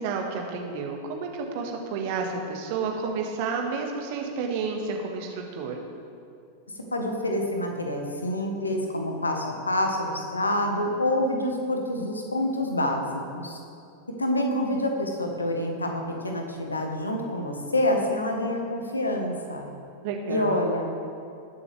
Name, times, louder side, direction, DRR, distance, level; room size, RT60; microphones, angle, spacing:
voice 1, 0.0-5.8 20.0-20.7, right 4 dB, 50° right, 2 dB, 1.7 m, -31 dB
voice 2, 6.9-13.6 14.2-19.7 20.3-20.8, left 1 dB, 80° left, 3 dB, 1.5 m, -27 dB
20.0 x 7.1 x 3.5 m, 2.5 s
figure-of-eight pair, 90°, 0 cm